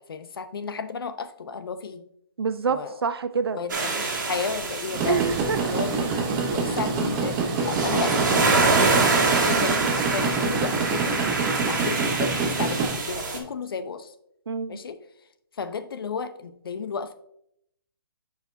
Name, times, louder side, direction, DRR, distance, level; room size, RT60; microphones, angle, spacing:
voice 1, 0.1-2.0 2.7-2.9 3.5-5.2 5.7-6.1 6.5-9.2 9.4-14.1 14.7-15.0 15.6-17.1, left 5 dB, 65° left, 11 dB, 0.6 m, -33 dB
voice 2, 2.4-3.6 5.1-5.7 14.5-14.8, right 5 dB, 80° right, 12 dB, 0.7 m, -27 dB
sound 1, 3.7-13.4, right 3 dB, 50° right, 1.7 m, -26 dB
sound 2, 4.9-12.9, right 4 dB, 15° right, 0.7 m, -26 dB
10.0 x 4.8 x 2.6 m, 0.75 s
hypercardioid pair, 160°, 13 cm